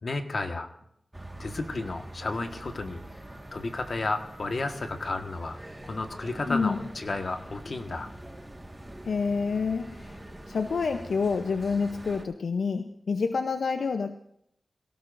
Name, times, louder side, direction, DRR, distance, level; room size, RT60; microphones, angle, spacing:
voice 1, 0.0-0.7 1.4-3.0 3.5-8.1, left 3 dB, 60° left, 5 dB, 1.5 m, -32 dB
sound 1, 1.1-12.2, right 1 dB, 15° right, 1.7 m, -44 dB
voice 2, 6.5-6.8 9.0-14.2, left 5 dB, 85° left, 7 dB, 0.7 m, -28 dB
23.5 x 17.5 x 2.6 m, 0.73 s
wide cardioid pair, 70°, 0 cm